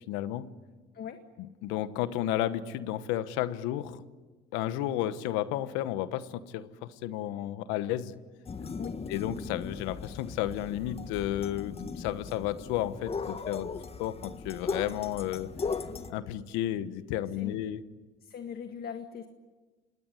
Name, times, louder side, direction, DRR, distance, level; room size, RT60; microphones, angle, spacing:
voice 1, 0.1-0.5 1.6-4.0 4.5-8.1 8.6-8.7 9.1-13.7 14.0-15.5 16.1-17.8, left 13 dB, 85° left, 14 dB, 1.2 m, -32 dB
sound 1, 8.5-16.1, left 5 dB, 30° left, 1.6 m, -38 dB
voice 2, 17.1-17.7 18.2-19.3, left 7 dB, 55° left, 7 dB, 1.9 m, -40 dB
26.5 x 20.0 x 9.7 m, 1.3 s
supercardioid pair, 75°, 19 cm